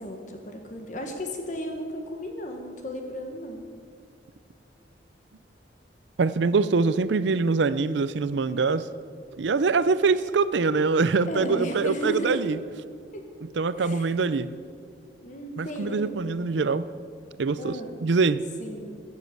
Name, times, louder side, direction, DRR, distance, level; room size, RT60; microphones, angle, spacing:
voice 1, 0.0-3.7 11.3-12.4 13.1-13.2 13.8-14.1 15.2-16.2 17.6-17.9 18.6-19.1, equal, 45° left, 4 dB, 1.4 m, -34 dB
voice 2, 6.2-8.9 9.4-12.6 13.6-14.5 15.6-16.9 17.4-18.4, right 4 dB, 85° right, 15 dB, 0.5 m, -24 dB
15.0 x 7.4 x 7.9 m, 2.1 s
head